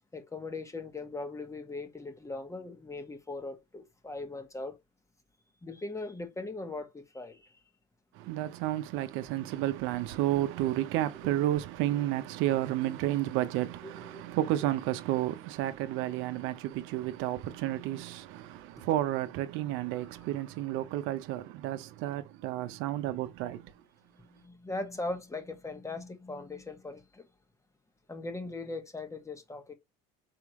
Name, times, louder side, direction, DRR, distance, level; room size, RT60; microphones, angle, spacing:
voice 1, 0.1-4.8 5.6-7.5 13.8-14.3 19.9-20.1 24.2-27.3 28.1-29.7, left 2 dB, 15° left, 1.2 m, -40 dB
voice 2, 8.2-23.7, right 14 dB, 75° right, 0.7 m, -31 dB
4.6 x 3.4 x 3.1 m
supercardioid pair, 100°, 21 cm